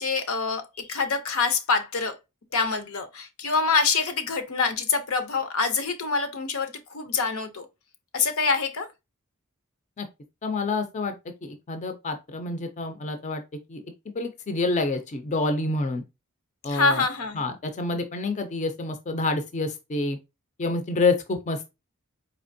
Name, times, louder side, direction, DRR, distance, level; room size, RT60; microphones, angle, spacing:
voice 1, 0.0-2.2 2.5-7.7 8.1-8.9 16.7-17.4, left 4 dB, 80° left, 0.6 m, -25 dB
voice 2, 10.4-11.1 11.4-13.4 13.7-13.8 14.2-16.0 16.6-17.0 17.4-20.2 20.6-21.7, left 3 dB, 35° left, 0.4 m, -27 dB
4.3 x 2.8 x 2.6 m
head